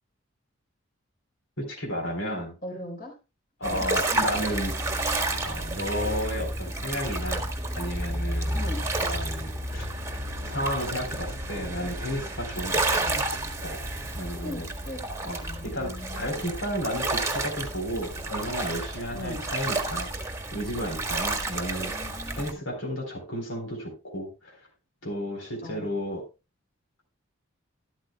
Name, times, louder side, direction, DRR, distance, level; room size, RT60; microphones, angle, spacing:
voice 1, 1.6-2.6 3.6-4.8 5.4-8.6 9.0-10.0 10.4-13.0 13.6-13.9 14.1-14.7 15.2-21.9 22.4-24.5 25.0-26.3, equal, 70° left, 3.9 m, -33 dB
voice 2, 2.6-3.2 3.6-4.4 8.5-8.9 12.9-13.3 14.4-15.0 15.4-16.5 19.1-19.5 21.6-22.6 25.6-25.9, left 1 dB, 45° left, 4.0 m, -39 dB
sound 1, 3.6-22.5, right 2 dB, 15° right, 1.4 m, -31 dB
13.0 x 12.0 x 2.3 m
head